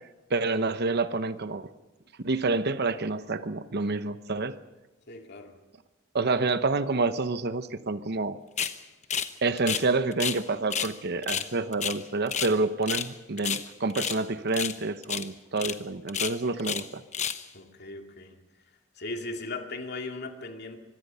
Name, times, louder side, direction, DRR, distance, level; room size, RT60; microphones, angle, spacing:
voice 1, 0.3-1.7 2.2-4.6 6.1-8.4 9.4-17.0, right 3 dB, 55° right, 12 dB, 0.9 m, -28 dB
voice 2, 5.1-5.5 6.3-6.4 17.5-18.4 19.0-20.8, left 2 dB, 55° left, 3 dB, 2.4 m, -38 dB
sound 1, 8.6-8.8 9.1-9.3 9.6-10.4 10.7-10.9 11.2-12.5 12.8-13.1 13.4-14.2 14.5-14.8 15.0-15.3 15.6-15.7 16.1-16.9 17.1-17.4, left 8 dB, 35° left, 1.0 m, -31 dB
25.0 x 22.5 x 5.6 m, 1.1 s
head